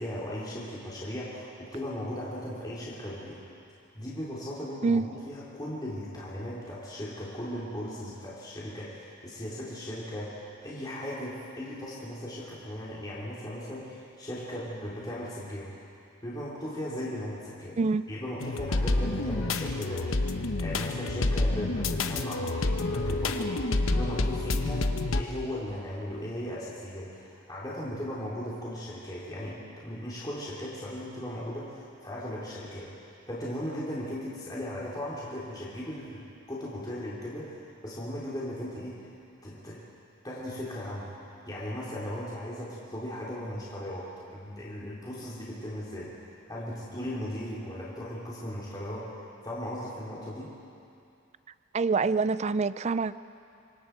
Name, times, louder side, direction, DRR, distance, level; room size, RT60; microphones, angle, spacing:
voice 1, 0.0-3.4 3.9-15.7 16.2-17.8 18.1-39.1 39.4-39.8 40.2-41.1 41.5-50.5, equal, 20° left, -7 dB, 3.3 m, -37 dB
sound 1, 18.4-25.2, left 2 dB, 80° left, 1.0 m, -28 dB
voice 2, 51.7-53.2, right 4 dB, 35° right, 15 dB, 0.4 m, -26 dB
26.5 x 24.0 x 4.6 m, 2.6 s
head